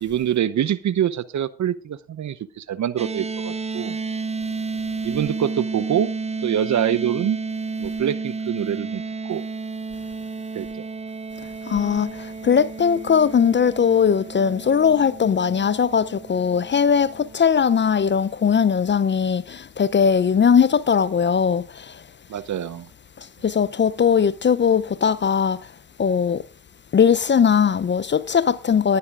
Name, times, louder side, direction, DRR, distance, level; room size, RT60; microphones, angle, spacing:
voice 1, 0.0-4.0 5.0-6.1 6.4-7.4 7.8-9.4 10.5-10.9 22.3-22.9, right 10 dB, 45° right, 0.8 m, -25 dB
sound 1, 3.0-17.4, right 4 dB, 15° right, 0.8 m, -31 dB
voice 2, 11.7-22.0 23.4-25.6 26.0-26.4 26.9-29.0, left 7 dB, 30° left, 0.6 m, -19 dB
19.5 x 11.0 x 2.5 m
hypercardioid pair, 55°, 39 cm